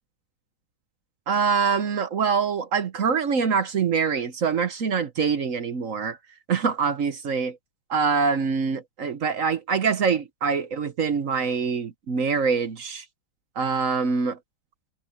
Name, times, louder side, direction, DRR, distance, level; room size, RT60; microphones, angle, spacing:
voice 1, 1.3-6.2 6.5-7.5 7.9-13.1 13.6-14.4, right 5 dB, 50° right, 1.1 m, -24 dB
omnidirectional pair, 2.2 m